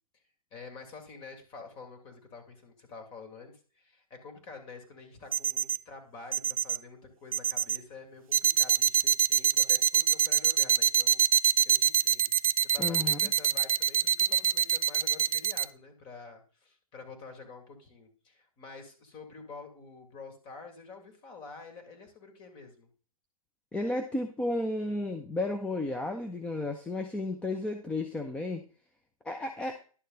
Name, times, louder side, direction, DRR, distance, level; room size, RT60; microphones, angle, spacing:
voice 1, 0.5-11.2 11.6-12.3 12.7-22.9, left 4 dB, 25° left, 5 dB, 2.5 m, -48 dB
sound 1, 5.3-5.8 6.3-6.8 7.3-7.8 8.3-15.6, right 9 dB, 70° right, 0.5 m, -24 dB
voice 2, 12.8-13.2 23.7-28.7 29.2-29.8, left 2 dB, 5° left, 5 dB, 0.6 m, -33 dB
11.5 x 6.5 x 4.0 m, 0.40 s
hypercardioid pair, 135°, 19 cm